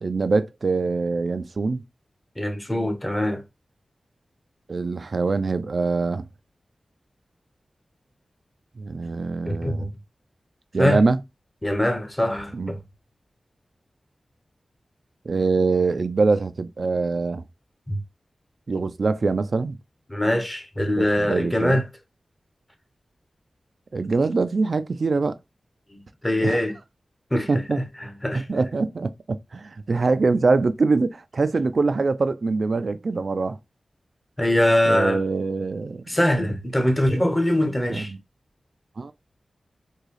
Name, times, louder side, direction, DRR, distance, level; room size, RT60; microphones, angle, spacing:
voice 1, 0.0-1.8 4.7-6.3 8.8-9.9 10.7-11.2 12.5-12.7 15.3-17.4 18.7-19.8 21.0-21.8 23.9-25.4 26.4-26.6 27.5-27.8 28.3-33.6 34.9-36.0 37.9-38.2 39.0-39.1, right 3 dB, 65° right, 0.4 m, -23 dB
voice 2, 2.4-3.4 9.4-9.9 10.8-11.0 11.6-12.8 17.9-18.0 20.1-21.9 25.9-26.8 27.3-28.4 34.4-35.2 36.1-38.1, left 1 dB, 20° left, 1.0 m, -23 dB
3.6 x 2.3 x 3.2 m
cardioid pair, 40°, 0 cm